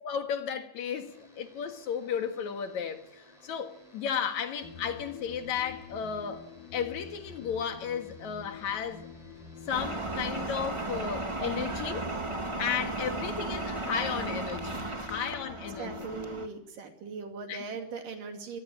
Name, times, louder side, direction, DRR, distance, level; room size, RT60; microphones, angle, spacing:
voice 1, 0.0-6.5 6.7-9.1 9.7-12.1 12.4-15.9 17.5-17.6, left 7 dB, 65° left, 3.0 m, -34 dB
sound 1, 0.8-11.4, equal, 10° left, 5.6 m, -57 dB
sound 2, 4.6-16.5, left 7 dB, 80° left, 3.2 m, -47 dB
sound 3, 9.7-16.5, right 2 dB, 45° right, 0.3 m, -35 dB
voice 2, 15.8-18.6, right 5 dB, 80° right, 4.2 m, -40 dB
24.5 x 18.5 x 8.6 m
omnidirectional pair, 3.8 m